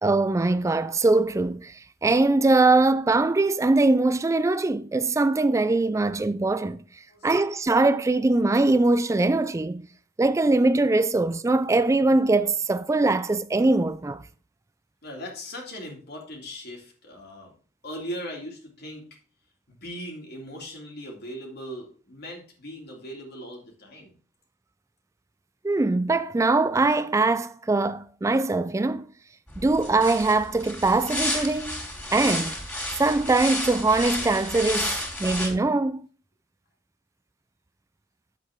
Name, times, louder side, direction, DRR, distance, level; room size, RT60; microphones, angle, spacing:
voice 1, 0.0-6.8 7.2-9.9 10.2-14.2 25.6-29.1 29.6-31.8 32.1-32.6 32.9-36.0, right 2 dB, 15° right, 0.3 m, -22 dB
voice 2, 15.0-17.5 17.8-19.0 19.7-24.1, equal, 55° left, 2.7 m, -39 dB
sound 1, 29.5-35.5, left 1 dB, 10° left, 3.5 m, -31 dB
8.9 x 7.8 x 3.6 m
head